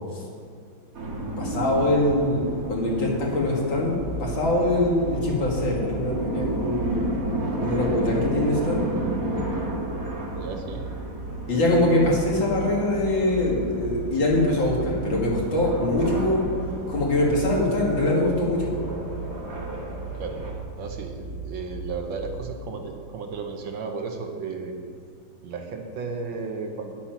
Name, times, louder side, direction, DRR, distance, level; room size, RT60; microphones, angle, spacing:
sound 1, 0.9-20.5, right 1 dB, 45° right, 2.3 m, -33 dB
voice 1, 1.4-3.9 4.2-7.0 7.6-8.8 11.5-16.4 16.9-18.7, left 1 dB, 70° left, -3 dB, 2.9 m, -23 dB
sound 2, 3.8-22.4, right 4 dB, 5° left, 2.1 m, -36 dB
voice 2, 10.3-10.9 20.2-20.4 20.8-24.7 25.4-26.9, right 4 dB, 70° right, 3 dB, 1.7 m, -34 dB
9.9 x 8.5 x 5.9 m, 2.2 s
omnidirectional pair, 2.2 m